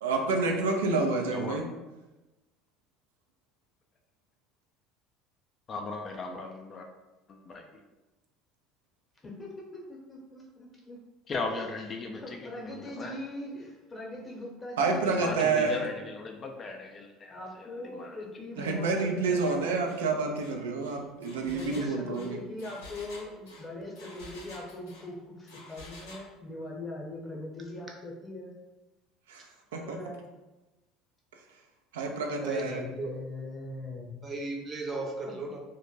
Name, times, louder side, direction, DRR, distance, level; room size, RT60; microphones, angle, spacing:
voice 1, 0.0-1.6 14.8-15.8 18.6-22.4 29.3-29.4 29.7-30.0 31.9-32.8, right 4 dB, 85° right, 3 dB, 0.3 m, -28 dB
voice 2, 5.7-6.9 7.3-7.6 11.3-13.2 15.0-18.8, left 3 dB, 40° left, 3 dB, 0.3 m, -38 dB
voice 3, 9.9-11.0 11.9-16.1 17.3-19.9 21.4-28.5 29.8-30.2 32.6-34.1 34.9-35.3, left 2 dB, 20° left, -2 dB, 0.8 m, -41 dB
Engine, 19.4-19.6 19.8-20.0 20.4-25.1 25.5-26.3, left 2 dB, 80° left, 0.7 m, -49 dB
voice 4, 32.3-33.1 34.2-35.6, right 2 dB, 35° right, 0 dB, 0.6 m, -36 dB
2.1 x 2.1 x 3.0 m, 1.1 s
hypercardioid pair, 75°, 0 cm